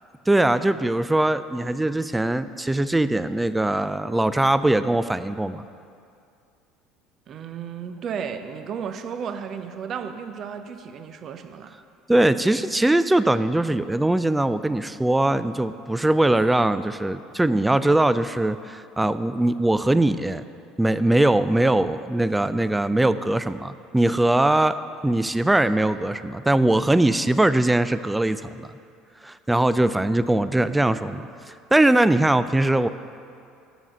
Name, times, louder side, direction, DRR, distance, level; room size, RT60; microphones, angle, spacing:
voice 1, 0.3-5.6 12.1-20.4 20.8-24.8 25.0-28.8 29.2-32.9, right 1 dB, 10° right, 13 dB, 0.3 m, -21 dB
voice 2, 7.3-11.8, right 7 dB, 40° right, 8 dB, 0.6 m, -33 dB
7.0 x 7.0 x 7.7 m, 2.5 s
figure-of-eight pair, 65°, 0 cm